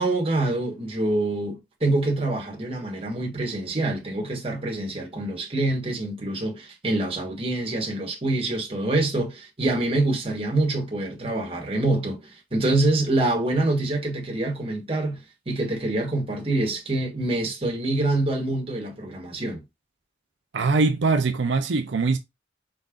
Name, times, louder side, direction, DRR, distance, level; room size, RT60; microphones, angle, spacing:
voice 1, 0.0-12.2 12.5-19.6, right 2 dB, 30° right, 1.4 m, -25 dB
voice 2, 20.5-22.2, right 3 dB, 85° right, 0.6 m, -22 dB
5.1 x 3.9 x 2.5 m
head